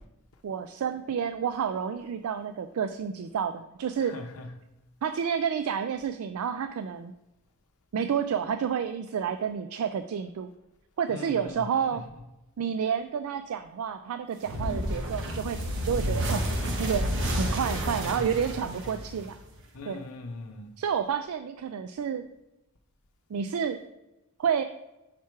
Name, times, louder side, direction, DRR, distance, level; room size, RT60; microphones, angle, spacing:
voice 1, 0.4-4.1 5.0-7.1 7.9-10.5 11.0-12.0 12.6-15.6 15.8-16.4 16.8-17.1 17.4-19.4 19.8-20.0 20.8-22.2 23.3-23.8 24.4-24.6, right 7 dB, 85° right, 9 dB, 0.4 m, -30 dB
voice 2, 4.0-4.5 11.1-12.0 17.7-18.2 19.7-20.7, left 3 dB, 85° left, 4 dB, 0.7 m, -41 dB
sound 1, 14.5-19.6, equal, 60° right, 1.0 m, -30 dB
5.9 x 4.4 x 4.7 m, 0.96 s
head